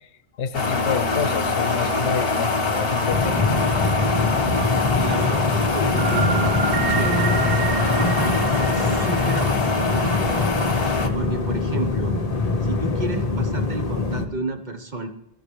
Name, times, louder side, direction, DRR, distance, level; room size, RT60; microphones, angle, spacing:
voice 1, 0.4-3.9, left 7 dB, 85° left, 14 dB, 1.0 m, -28 dB
sound 1, 0.5-11.1, left 3 dB, 60° left, 1.5 m, -24 dB
sound 2, 3.1-14.3, left 3 dB, 35° left, 1.2 m, -24 dB
sound 3, 3.5-4.8 6.0-9.5, right 7 dB, 85° right, 1.3 m, -28 dB
voice 2, 5.0-10.6 11.1-12.2 12.6-15.1, right 2 dB, 45° right, 5 dB, 1.3 m, -32 dB
22.5 x 13.5 x 3.3 m, 0.80 s
omnidirectional pair, 1.1 m